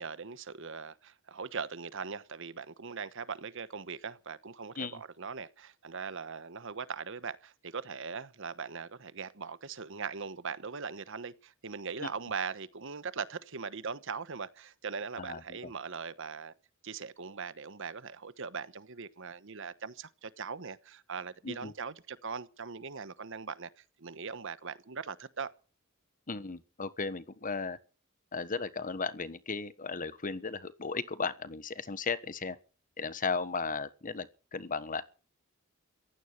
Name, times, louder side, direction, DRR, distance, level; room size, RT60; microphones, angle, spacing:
voice 1, 0.0-16.5 16.8-23.7 24.0-25.5, right 5 dB, 65° right, 1.1 m, -40 dB
voice 2, 15.2-15.7 21.4-21.7 26.3-27.8 28.3-32.6 33.0-35.0, left 4 dB, 40° left, 1.3 m, -36 dB
15.5 x 13.0 x 6.6 m
head